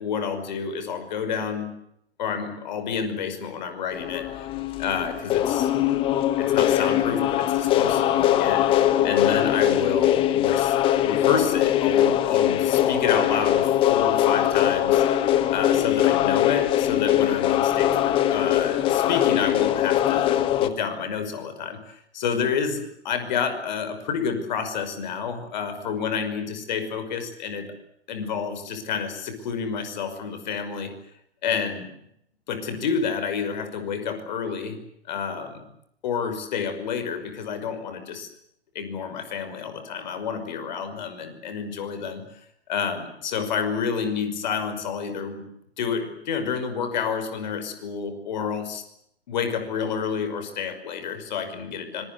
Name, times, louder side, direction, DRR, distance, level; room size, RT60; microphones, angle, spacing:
voice 1, 0.0-1.7 2.2-4.5 4.8-5.7 6.4-8.7 9.0-15.0 15.5-27.7 28.1-30.9 31.4-31.9 32.5-34.8 35.1-35.6 36.0-38.3 38.7-42.2 42.7-45.4 45.8-48.8 49.3-52.0, left 6 dB, 40° left, 9 dB, 5.8 m, -29 dB
sound 1, 3.9-20.7, left 12 dB, 15° left, 1.3 m, -21 dB
25.5 x 23.5 x 8.2 m, 0.74 s
figure-of-eight pair, 125°, 34 cm